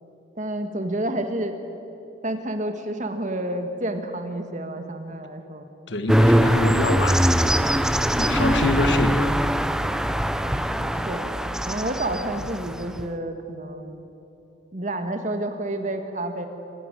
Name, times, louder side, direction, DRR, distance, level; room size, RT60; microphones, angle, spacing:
voice 1, 0.3-1.5 2.2-5.7 10.4-11.3 11.7-14.0 14.7-16.5, right 1 dB, 40° right, 6 dB, 1.6 m, -29 dB
voice 2, 5.9-7.7 8.2-9.9, left 2 dB, 65° left, 9 dB, 1.4 m, -27 dB
sound 1, 6.1-13.0, equal, 5° right, 0.5 m, -22 dB
26.5 x 12.0 x 9.9 m, 2.9 s
head